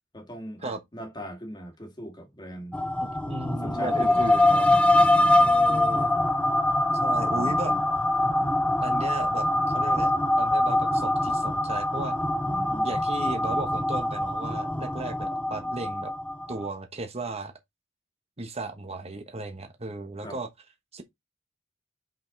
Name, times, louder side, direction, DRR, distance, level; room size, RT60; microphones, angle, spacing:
voice 1, 0.1-2.8 3.6-4.2 7.2-7.8 12.4-13.0 20.2-20.4, equal, 20° left, 2.0 m, -40 dB
sound 1, 2.7-16.7, left 1 dB, 5° left, 0.6 m, -24 dB
voice 2, 3.0-4.7 5.4-6.1 7.0-7.7 8.8-10.1 10.4-12.2 12.8-16.1 16.5-17.5 18.4-20.5 20.9-21.0, right 2 dB, 30° right, 1.2 m, -35 dB
5.7 x 5.4 x 3.9 m
head